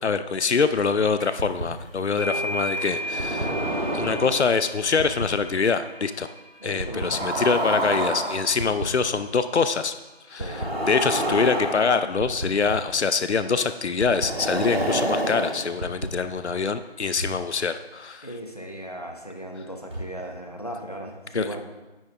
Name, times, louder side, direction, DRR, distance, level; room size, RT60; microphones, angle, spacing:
voice 1, 0.0-3.5 3.9-6.3 6.6-9.9 10.3-18.3 21.3-21.6, left 5 dB, 80° left, 11 dB, 0.6 m, -24 dB
sound 1, 1.2-1.5 1.8-9.1, equal, 55° left, 2.5 m, -36 dB
sound 2, 1.4-1.6 2.9-4.5 5.0-5.2 6.8-8.8 10.4-12.5 14.0-16.1, right 1 dB, 65° right, 1.7 m, -28 dB
voice 2, 2.2-2.6 6.6-7.4 10.4-10.7 18.2-21.6, equal, 35° left, 2 dB, 1.0 m, -37 dB
sound 3, 12.6-13.0 14.7-15.0 17.1-17.4 18.1-18.2 19.9-20.4, equal, 25° right, 3.3 m, -35 dB
9.2 x 8.6 x 3.5 m, 1.1 s
figure-of-eight pair, 180°, 33 cm